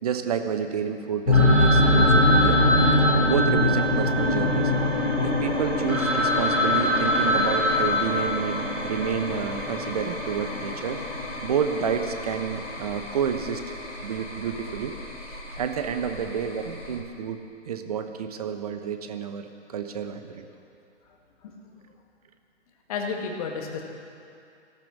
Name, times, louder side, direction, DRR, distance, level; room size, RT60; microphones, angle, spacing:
voice 1, 0.0-2.6 3.3-4.7 5.2-11.0 11.4-14.9 15.3-17.4 17.6-20.5, right 7 dB, 30° right, 8 dB, 0.9 m, -29 dB
sound 1, 1.3-17.0, left 1 dB, 70° left, 3.5 m, -25 dB
Telephone, 1.3-5.1 5.6-5.7 5.9-8.8, left 1 dB, 5° right, 2.3 m, -25 dB
voice 2, 21.4-21.8 22.9-23.8, left 5 dB, 30° left, 2 dB, 1.8 m, -32 dB
15.5 x 13.5 x 6.3 m, 2.5 s
figure-of-eight pair, 130°, 36 cm